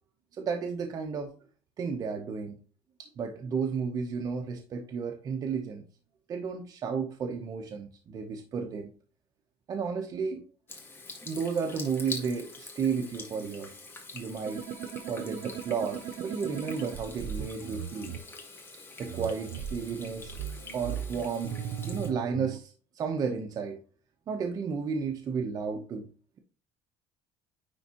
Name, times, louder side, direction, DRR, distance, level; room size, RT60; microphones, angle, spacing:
voice 1, 0.3-1.3 1.8-2.6 3.0-5.9 6.3-8.9 9.7-10.4 11.2-13.7 14.1-14.7 15.1-18.1 19.0-20.3 20.7-21.6 21.8-23.8 24.3-26.1, right 5 dB, 35° right, 0.8 m, -33 dB
Water tap faucet / Sink (filling or washing), 10.7-22.1, left 3 dB, 20° left, 1.5 m, -45 dB
sound 1, 14.5-18.2 19.0-22.6, right 8 dB, 75° right, 0.6 m, -38 dB
9.8 x 3.5 x 2.9 m
cardioid pair, 155°, 11 cm